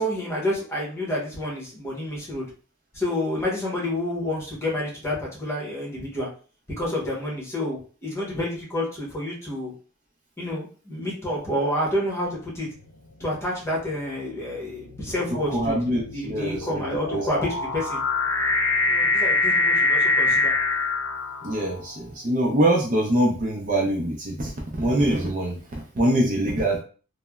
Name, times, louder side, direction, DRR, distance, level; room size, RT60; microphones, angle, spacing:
voice 1, 0.0-2.5 2.9-6.3 6.8-9.7 10.4-12.7 13.2-18.0 18.8-20.5, left 1 dB, 15° left, -5 dB, 0.9 m, -29 dB
sound 1, 12.5-12.9 13.7-21.9, left 3 dB, 70° left, 0.4 m, -25 dB
voice 2, 15.5-16.9 17.1-17.2 21.4-24.5 24.8-25.6 26.0-26.8, right 1 dB, 35° right, -1 dB, 0.5 m, -23 dB
3.2 x 2.0 x 2.3 m, 0.39 s
head